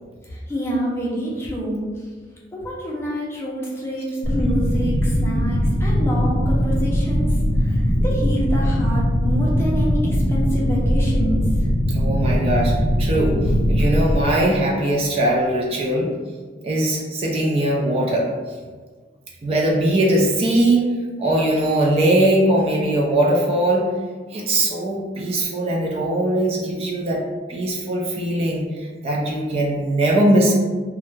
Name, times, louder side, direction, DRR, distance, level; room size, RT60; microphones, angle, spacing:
voice 1, 0.5-1.8 2.5-7.3 7.6-11.5, equal, 15° left, -5 dB, 0.5 m, -27 dB
sound 1, 4.2-14.2, equal, 75° left, 0.5 m, -20 dB
voice 2, 11.9-12.7 13.0-16.1 16.6-18.3 19.4-20.9 21.2-23.9 24.3-27.2 27.5-30.5, right 1 dB, 35° right, -3 dB, 0.4 m, -20 dB
2.4 x 2.1 x 3.0 m, 1.5 s
head